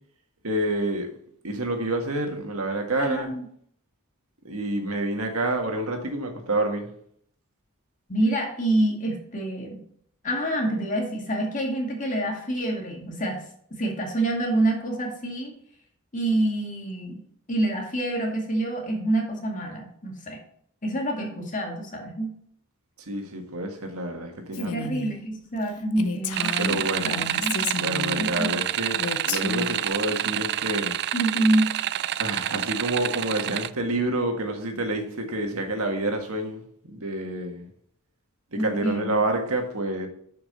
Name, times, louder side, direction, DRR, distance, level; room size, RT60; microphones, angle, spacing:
voice 1, 0.4-1.1 1.4-3.3 4.4-6.9 23.1-24.7 26.6-27.3 27.8-31.0 32.2-37.7 38.5-40.1, right 1 dB, 75° right, 3 dB, 1.7 m, -28 dB
voice 2, 3.0-3.5 8.1-9.8 10.2-13.4 13.8-15.6 16.1-17.2 17.5-20.4 20.8-22.4 24.6-27.7 28.2-28.5 31.1-31.7 38.6-39.2, right 1 dB, 35° left, 1 dB, 2.2 m, -27 dB
Female speech woman speaking, 24.5-25.1 25.6-25.7 26.0-28.3 29.0-29.9, left 4 dB, 90° left, 0.8 m, -31 dB
sound 1, 26.3-33.7, right 12 dB, 50° right, 0.3 m, -28 dB
6.8 x 5.8 x 6.7 m, 0.65 s
head